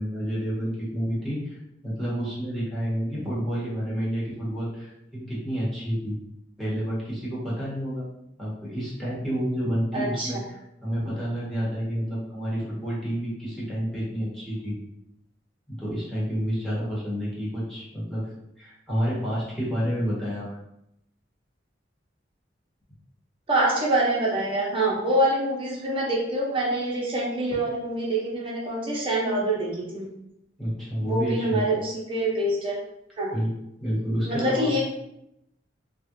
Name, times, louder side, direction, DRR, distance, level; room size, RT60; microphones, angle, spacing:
voice 1, 0.0-6.2 6.6-8.0 8.4-14.7 15.7-18.3 18.6-20.6 30.6-31.6 33.3-33.5 33.8-34.7, equal, ahead, -9 dB, 1.2 m, -29 dB
voice 2, 9.9-10.4 23.5-30.0 31.1-32.8 33.2-33.3 34.3-34.8, right 1 dB, 30° right, -5 dB, 1.0 m, -25 dB
3.4 x 2.4 x 3.0 m, 0.81 s
head